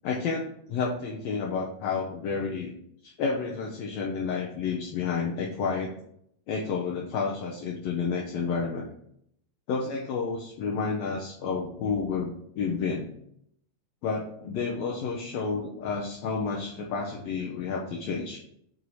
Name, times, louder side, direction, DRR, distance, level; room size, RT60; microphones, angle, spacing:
voice 1, 0.0-2.7 3.0-5.9 6.5-8.9 9.7-13.1 14.0-18.4, left 5 dB, 75° left, -1 dB, 1.7 m, -30 dB
7.6 x 2.8 x 4.7 m, 0.72 s
omnidirectional pair, 3.5 m